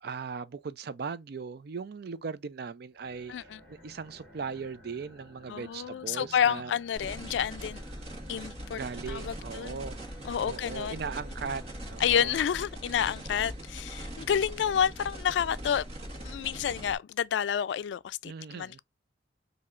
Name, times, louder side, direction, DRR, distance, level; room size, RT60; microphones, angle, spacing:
voice 1, 0.0-6.8 8.7-10.0 10.4-11.6 11.9-12.4 18.2-18.8, right 5 dB, 60° right, 0.4 m, -38 dB
sound 1, 2.9-13.4, equal, 5° left, 1.3 m, -54 dB
voice 2, 3.3-3.6 5.5-7.8 8.3-8.8 9.1-9.8 10.2-11.0 12.0-15.8 16.2-18.8, left 8 dB, 80° left, 0.3 m, -29 dB
sound 2, 7.0-17.0, equal, 35° right, 1.6 m, -41 dB
4.2 x 2.8 x 3.7 m
head